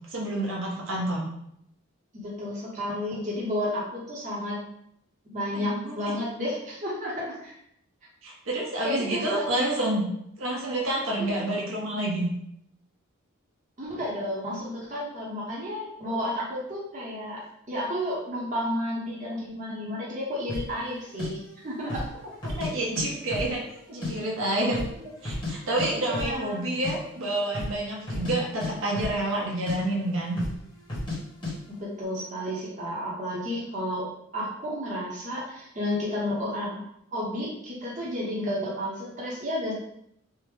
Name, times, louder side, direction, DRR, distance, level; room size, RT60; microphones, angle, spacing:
voice 1, 0.1-1.3 5.5-5.9 8.2-10.0 10.4-12.3 22.4-23.6 23.9-24.8 25.2-30.4, right 1 dB, 65° right, -3 dB, 0.7 m, -28 dB
voice 2, 2.1-4.6 5.3-7.5 8.8-9.5 11.2-11.4 13.8-17.4 17.7-22.1 25.0-25.1 25.9-26.6 31.7-34.1 34.3-39.7, left 1 dB, 35° right, -5 dB, 0.7 m, -32 dB
sound 1, 20.5-20.7 21.2-21.3 21.8-22.1 22.4-23.1 23.3-24.1 24.4-24.5 24.7-25.5 25.8-25.9 26.1-26.4 26.6-26.9 27.5-27.8 28.0-28.3 28.6-29.4 29.7-29.8 30.3-30.6 30.9-31.2 31.4-31.5, left 2 dB, 20° left, 1.0 m, -32 dB
3.4 x 2.0 x 3.2 m, 0.75 s
head